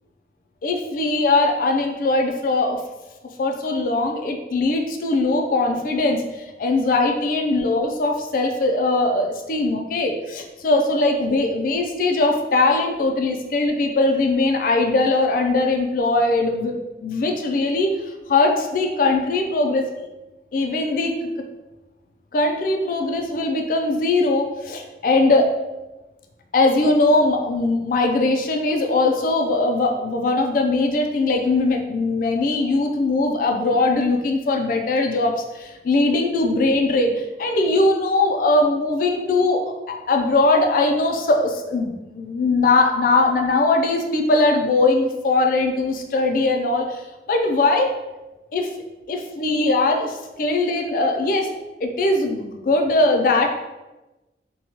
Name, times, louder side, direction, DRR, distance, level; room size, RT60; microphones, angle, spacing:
voice 1, 0.6-2.8 3.4-19.9 20.5-21.2 22.3-25.5 26.5-47.9 48.5-48.7 49.1-51.5 51.8-53.5, left 2 dB, 50° left, 3 dB, 0.3 m, -20 dB
2.8 x 2.2 x 2.8 m, 1.1 s
head